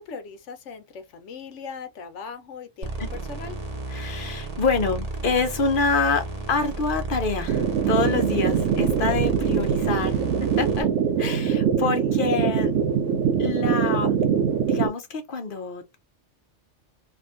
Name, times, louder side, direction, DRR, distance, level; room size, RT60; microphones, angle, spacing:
voice 1, 0.0-3.6 10.2-10.4 12.0-12.2, left 5 dB, 75° left, 1.0 m, -40 dB
sound 1, 2.8-10.8, right 2 dB, 35° right, 0.9 m, -33 dB
voice 2, 3.9-10.2 10.6-10.9 11.2-12.7 13.4-14.4 14.7-16.0, left 4 dB, 50° left, 0.8 m, -26 dB
sound 2, 7.5-14.9, right 7 dB, 80° right, 0.9 m, -23 dB
3.4 x 2.2 x 2.4 m
omnidirectional pair, 1.3 m